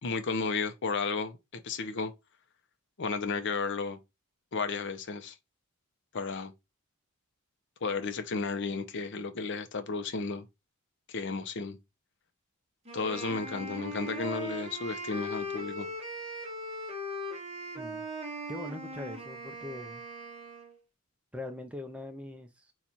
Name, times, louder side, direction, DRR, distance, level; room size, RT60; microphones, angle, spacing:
voice 1, 0.0-1.4 1.6-2.1 3.0-4.0 4.5-5.4 6.1-6.5 7.8-10.4 11.1-11.8 12.9-15.9, left 4 dB, 55° left, 0.6 m, -33 dB
Wind instrument woodwind instrument, 12.9-20.8, equal, 30° right, 1.0 m, -39 dB
voice 2, 17.8-18.1 18.5-20.1 21.3-22.7, left 1 dB, 5° right, 0.6 m, -41 dB
4.1 x 2.4 x 4.4 m
head